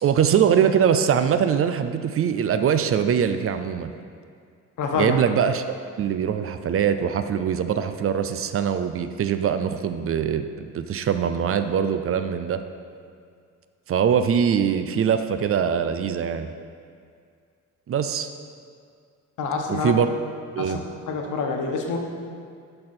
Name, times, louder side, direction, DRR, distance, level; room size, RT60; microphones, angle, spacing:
voice 1, 0.0-3.9 4.9-5.6 6.0-12.6 13.9-16.5 17.9-18.3 19.7-20.1 20.6-20.8, right 8 dB, 45° right, 9 dB, 0.5 m, -22 dB
voice 2, 4.8-5.2 19.4-19.9 20.6-22.0, left 4 dB, 80° left, 2 dB, 1.1 m, -27 dB
11.5 x 4.4 x 4.3 m, 2.2 s
cardioid pair, 90°, 30 cm